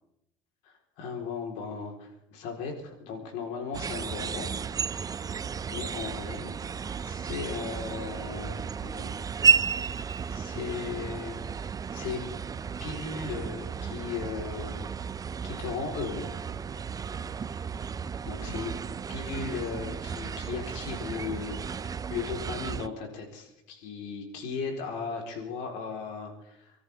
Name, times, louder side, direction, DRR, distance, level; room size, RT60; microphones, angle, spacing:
voice 1, 0.6-4.5 5.7-6.5 7.0-9.2 9.8-10.0 10.3-11.4 11.9-12.3 12.8-14.9 15.4-16.3 18.3-18.7 19.1-21.6 21.8-26.7, left 5 dB, 75° left, 2 dB, 4.2 m, -37 dB
sound 1, 3.7-22.9, right 6 dB, 30° right, 0.6 m, -32 dB
29.0 x 13.5 x 3.6 m, 0.82 s
supercardioid pair, 80°, 13 cm